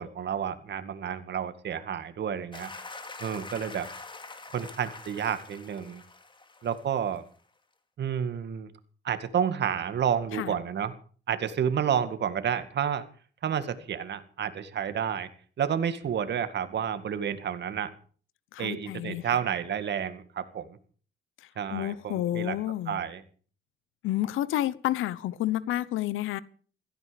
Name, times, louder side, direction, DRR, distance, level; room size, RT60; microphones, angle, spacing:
voice 1, 0.0-2.7 3.2-3.9 4.5-6.0 6.6-7.2 8.0-8.7 9.0-10.9 11.3-13.0 13.4-15.3 15.6-17.9 18.6-20.8 21.6-22.6 22.9-23.2, right 8 dB, 60° right, 11 dB, 2.1 m, -30 dB
sound 1, 2.5-7.2, left 3 dB, 25° left, 2.7 m, -44 dB
voice 2, 18.5-19.3 21.4-23.0 24.0-26.4, left 14 dB, 85° left, 19 dB, 1.0 m, -30 dB
16.5 x 15.0 x 5.2 m, 0.43 s
cardioid pair, 90°, 20 cm